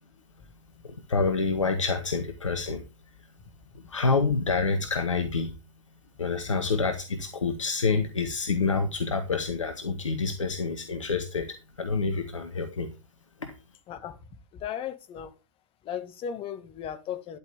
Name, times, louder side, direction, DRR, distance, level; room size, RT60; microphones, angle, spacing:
voice 1, 0.8-2.8 3.7-5.5 6.2-12.9 13.4-13.5, left 4 dB, 80° left, 1.8 m, -27 dB
voice 2, 13.9-14.2 14.5-15.3 15.8-17.4, left 9 dB, 35° left, 2.1 m, -36 dB
13.0 x 11.0 x 3.7 m
figure-of-eight pair, 90°, 16 cm